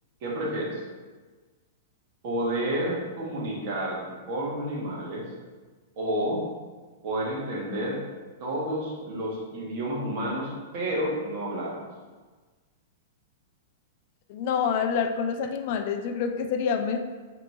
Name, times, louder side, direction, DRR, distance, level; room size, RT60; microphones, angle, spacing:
voice 1, 0.2-0.8 2.2-4.0 4.3-5.2 6.0-6.4 7.0-8.0 8.4-11.8, right 1 dB, 50° right, -4 dB, 1.2 m, -30 dB
voice 2, 14.3-17.0, left 6 dB, 50° left, 6 dB, 0.3 m, -27 dB
4.2 x 3.0 x 3.2 m, 1.4 s
hypercardioid pair, 135°, 0 cm